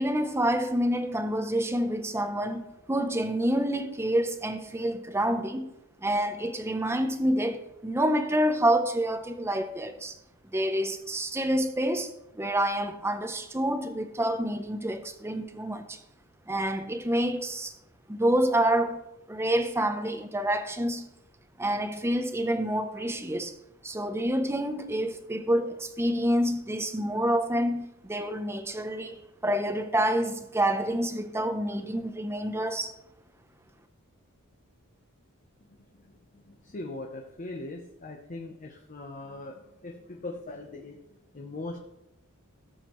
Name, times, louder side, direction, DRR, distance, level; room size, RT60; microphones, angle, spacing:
voice 1, 0.0-5.7 6.0-10.1 10.5-16.0 16.5-17.7 18.1-19.0 19.3-21.1 21.6-23.5 23.8-32.9, right 1 dB, 10° right, 0.7 m, -28 dB
voice 2, 35.7-41.0 41.3-41.8, left 2 dB, 35° left, 0.8 m, -40 dB
16.5 x 7.2 x 3.1 m
head